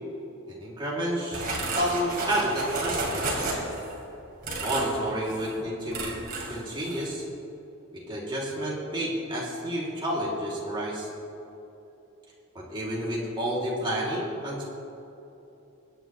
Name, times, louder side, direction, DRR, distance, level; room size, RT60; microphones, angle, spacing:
voice 1, 0.5-1.4 1.8-3.6 4.6-6.1 6.5-7.3 7.9-11.1 12.5-14.6, right 1 dB, 20° right, -5 dB, 2.3 m, -30 dB
sound 1, 1.3-3.9 4.4-5.0 5.3-5.5 5.9-6.6 6.8-7.0, right 2 dB, 40° right, 2.7 m, -32 dB
23.0 x 9.1 x 3.0 m, 3.0 s
head